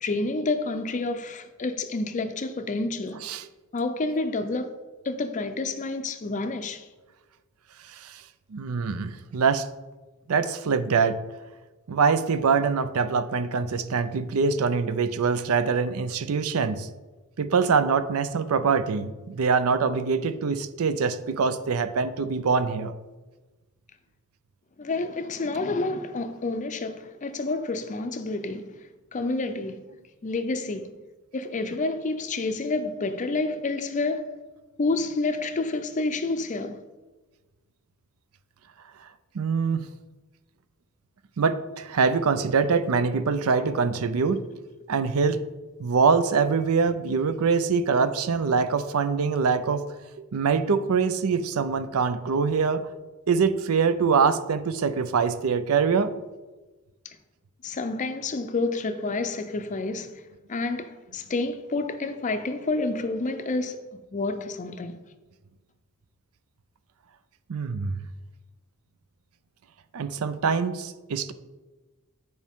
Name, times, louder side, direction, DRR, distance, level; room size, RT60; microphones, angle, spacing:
voice 1, 0.0-3.2 3.7-4.8 5.0-6.9 24.8-28.8 29.1-29.9 30.2-30.9 31.3-34.4 34.8-36.8 57.0-57.2 57.6-60.2 60.5-65.0, left 3 dB, 35° left, 0.5 m, -29 dB
voice 2, 7.9-8.2 8.5-9.7 10.3-11.2 11.9-16.9 17.4-22.9 39.0-39.1 39.3-39.8 41.4-44.4 44.9-45.4 45.8-49.9 50.3-52.8 53.3-56.1 67.5-68.0 69.9-71.3, right 5 dB, 70° right, 0.5 m, -24 dB
9.8 x 4.6 x 3.6 m
head